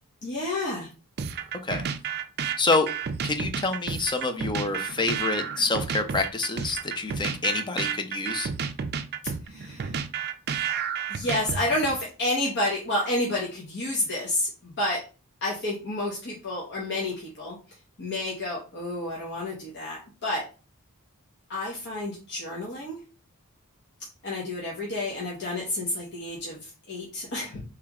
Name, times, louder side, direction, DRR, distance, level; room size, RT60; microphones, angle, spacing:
voice 1, 0.2-0.9 9.4-10.0 11.1-15.0 15.4-20.4 21.5-23.0 24.2-27.6, left 1 dB, 55° left, -4 dB, 1.0 m, -30 dB
sound 1, 1.2-12.0, right 7 dB, 45° right, 0.4 m, -31 dB
voice 2, 2.6-2.9 3.2-8.5, left 3 dB, 20° left, 6 dB, 0.5 m, -27 dB
3.2 x 3.0 x 3.6 m, 0.35 s
head